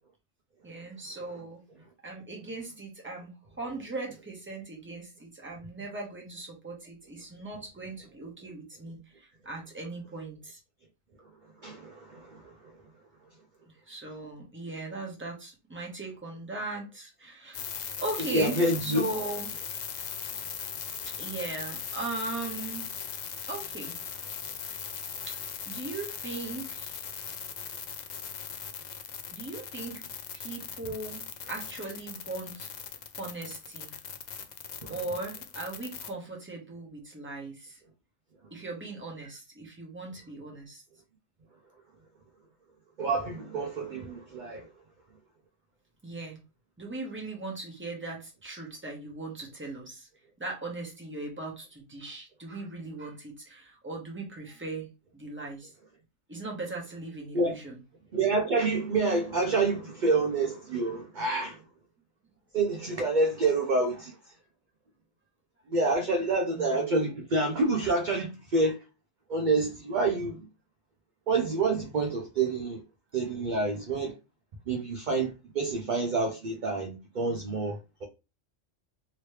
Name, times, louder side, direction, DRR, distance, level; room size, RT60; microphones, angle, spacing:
voice 1, 0.6-1.6 2.0-3.3 3.6-10.6 13.7-17.7 18.0-19.5 21.2-22.8 23.5-23.9 25.3-27.0 29.3-30.0 30.3-32.7 33.2-34.0 34.9-37.8 38.5-40.8 46.0-46.4 46.8-50.1 50.4-54.9 55.1-55.7 56.3-57.8 66.5-66.8, right 2 dB, 10° right, 0.9 m, -39 dB
voice 2, 11.6-12.5 18.3-19.0 34.8-34.9 43.0-44.7 57.3-57.5 58.1-61.6 62.5-64.1 65.7-68.8 69.3-70.5 71.3-72.8 73.1-74.1 74.7-78.0, right 3 dB, 50° right, 0.6 m, -28 dB
sound 1, 17.5-36.1, left 7 dB, 70° left, 0.4 m, -39 dB
3.1 x 2.8 x 3.2 m
omnidirectional pair, 1.3 m